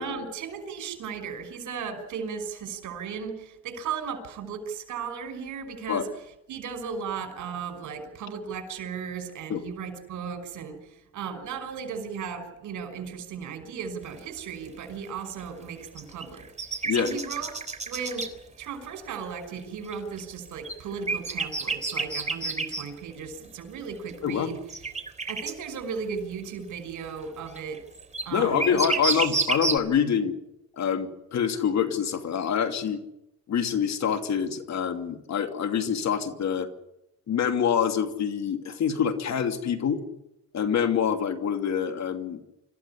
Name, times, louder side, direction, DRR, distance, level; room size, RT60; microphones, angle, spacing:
voice 1, 0.0-6.0 6.5-10.8 11.1-16.5 16.9-17.6 17.8-18.3 18.6-24.6 25.3-27.8 28.2-29.4, right 6 dB, 80° right, 7 dB, 5.7 m, -36 dB
sound 1, 14.0-14.1 14.6-14.7 15.8-18.3 19.9-22.8 24.1-24.2 24.7-25.5 27.5-29.8, right 3 dB, 25° right, 3.6 m, -29 dB
voice 2, 24.2-24.6 28.3-30.3 30.7-33.0 33.5-36.7 37.3-40.0 40.5-42.4, left 7 dB, 60° left, 6 dB, 2.8 m, -26 dB
26.0 x 15.0 x 10.0 m, 0.88 s
cardioid pair, 90°, 30 cm